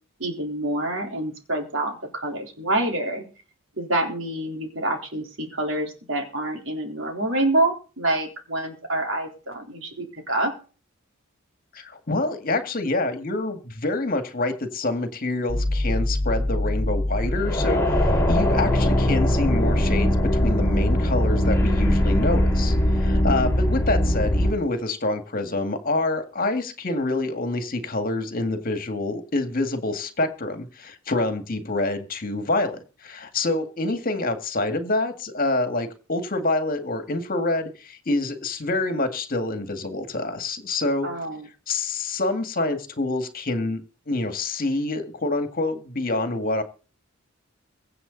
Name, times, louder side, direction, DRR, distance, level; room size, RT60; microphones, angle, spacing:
voice 1, 0.2-3.3 3.8-10.5 23.2-23.5 41.0-41.5, right 1 dB, 65° right, 2 dB, 3.7 m, -27 dB
voice 2, 11.7-41.1 41.7-43.8 44.1-46.6, left 2 dB, 45° left, 7 dB, 2.0 m, -27 dB
sound 1, 15.5-24.5, left 1 dB, 15° left, 3.1 m, -21 dB
23.5 x 8.0 x 4.0 m, 0.37 s
head